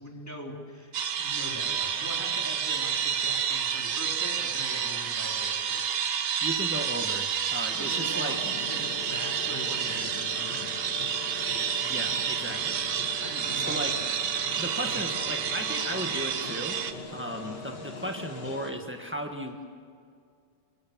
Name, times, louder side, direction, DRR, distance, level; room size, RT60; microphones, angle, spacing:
voice 1, 0.0-5.8 7.7-10.8 13.2-13.9 14.8-15.0, equal, 5° left, -1 dB, 3.3 m, -41 dB
sound 1, 0.9-16.9, right 8 dB, 55° right, 1.6 m, -30 dB
voice 2, 6.4-8.4 11.8-12.8 13.5-14.0 14.6-16.8 17.1-19.6, equal, 20° right, 3 dB, 0.3 m, -35 dB
sound 2, 8.3-18.7, left 5 dB, 60° left, 3.5 m, -42 dB
29.0 x 22.5 x 7.5 m, 2.3 s
omnidirectional pair, 3.3 m